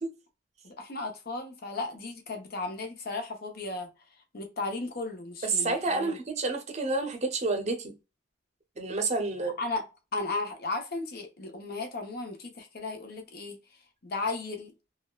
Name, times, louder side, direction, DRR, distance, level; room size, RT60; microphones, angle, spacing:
voice 1, 0.6-3.9 4.3-6.2 9.6-9.8 10.1-13.6 14.0-14.7, left 3 dB, 55° left, 0.7 m, -35 dB
voice 2, 5.4-7.9 8.8-9.6, right 3 dB, 35° right, 0.6 m, -29 dB
3.4 x 2.1 x 2.3 m
head